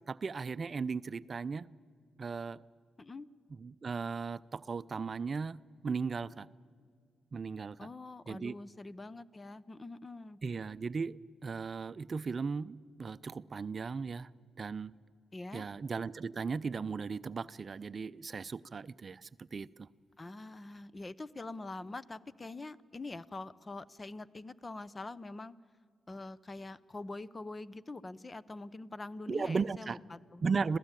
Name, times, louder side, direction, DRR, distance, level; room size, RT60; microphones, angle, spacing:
voice 1, 0.0-1.7 2.2-2.6 3.6-5.6 5.8-6.5 7.3-7.9 8.3-8.6 10.4-14.3 14.6-14.9 15.5-19.9 29.3-30.0 30.4-30.8, right 5 dB, 45° right, 16 dB, 0.5 m, -36 dB
voice 2, 7.8-10.4 15.3-15.7 20.2-25.5 26.1-30.4, left 2 dB, 30° left, 19 dB, 0.7 m, -44 dB
26.5 x 16.0 x 9.0 m, 2.1 s
supercardioid pair, 60°, 0 cm